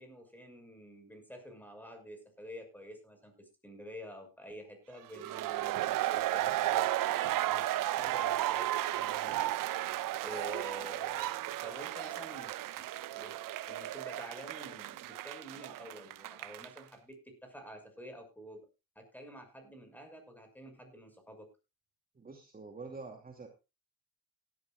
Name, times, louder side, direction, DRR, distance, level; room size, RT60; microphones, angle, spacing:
voice 1, 0.0-6.9 7.4-7.7 8.0-9.5 10.2-12.9 13.1-13.3 13.7-18.6 19.0-21.5, equal, 5° left, 6 dB, 6.0 m, -49 dB
sound 1, 5.1-16.8, right 14 dB, 60° right, 0.8 m, -34 dB
voice 2, 22.1-23.5, right 3 dB, 25° right, 3 dB, 2.5 m, -46 dB
17.5 x 12.5 x 2.4 m, 0.28 s
cardioid pair, 90°, 36 cm